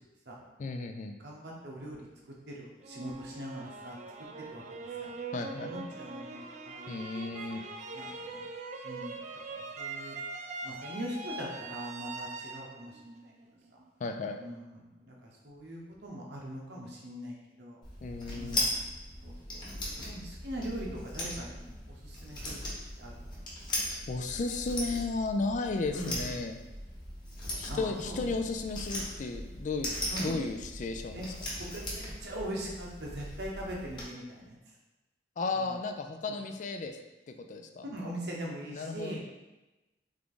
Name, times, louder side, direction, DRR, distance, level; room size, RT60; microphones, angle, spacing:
voice 1, 0.6-1.2 5.3-5.7 6.9-7.6 14.0-14.4 18.0-18.6 24.1-26.6 27.6-29.9 30.2-31.3 35.4-36.9 37.3-37.9 38.7-39.2, left 3 dB, 45° left, 5 dB, 0.3 m, -34 dB
voice 2, 1.2-2.0 2.5-4.0 4.4-4.6 5.0-6.9 7.5-7.6 7.9-8.4 8.8-9.2 9.5-10.2 10.6-13.3 13.7-13.8 14.4-17.8 18.3-18.6 19.2-19.6 20.0-22.6 23.0-23.3 25.9-26.4 27.7-28.3 30.1-30.4 31.1-31.3 31.6-34.6 35.6-35.8 37.9-39.2, right 1 dB, 70° right, -2 dB, 1.0 m, -41 dB
sound 1, 2.8-13.8, right 3 dB, 40° right, 0.3 m, -42 dB
sound 2, 17.8-34.0, left 1 dB, 25° left, 1.2 m, -38 dB
3.6 x 3.5 x 3.7 m, 1.0 s
head